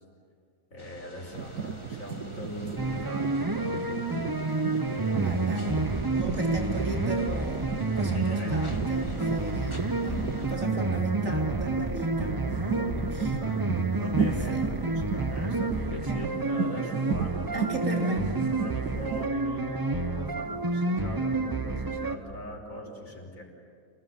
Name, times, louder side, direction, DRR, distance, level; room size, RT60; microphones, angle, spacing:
voice 1, 0.7-4.4 4.9-5.4 6.2-6.4 8.1-8.6 9.0-9.3 10.1-10.3 12.8-13.7 14.0-17.7 18.6-23.4, left 1 dB, 55° left, 0 dB, 5.8 m, -40 dB
sound 1, 0.8-10.5, left 1 dB, 20° left, 2.0 m, -50 dB
sound 2, 1.3-19.3, right 6 dB, 70° right, 1.4 m, -35 dB
sound 3, 2.8-22.2, right 3 dB, 15° right, 0.8 m, -29 dB
voice 2, 5.2-5.9 6.1-9.8 10.0-13.4 14.5-14.9 15.9-16.4 17.5-18.4, right 2 dB, 55° right, 1 dB, 4.2 m, -36 dB
29.0 x 19.5 x 9.9 m, 2.3 s
omnidirectional pair, 1.7 m